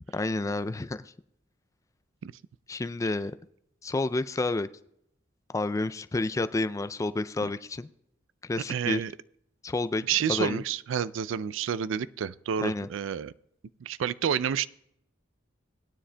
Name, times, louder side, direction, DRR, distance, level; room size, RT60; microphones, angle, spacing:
voice 1, 0.1-1.0 2.7-3.4 3.8-4.7 5.5-7.9 8.4-9.0 9.6-10.6 12.6-12.9, left 2 dB, 15° left, 12 dB, 0.3 m, -30 dB
voice 2, 8.7-9.1 10.1-13.3 13.8-14.7, right 8 dB, 80° right, 18 dB, 0.4 m, -29 dB
19.0 x 9.8 x 2.2 m, 0.77 s
head